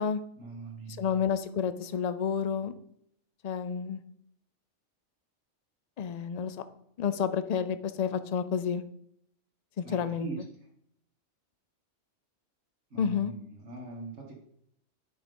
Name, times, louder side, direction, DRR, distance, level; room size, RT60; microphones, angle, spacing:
voice 1, 0.4-1.1 9.8-10.4 12.9-14.4, right 3 dB, 75° right, 0 dB, 1.8 m, -41 dB
voice 2, 1.0-2.7 3.4-4.0 6.0-6.6 7.0-8.8 9.8-10.3 13.0-13.3, left 7 dB, 50° left, 11 dB, 0.5 m, -30 dB
10.5 x 3.7 x 5.3 m, 0.72 s
omnidirectional pair, 1.2 m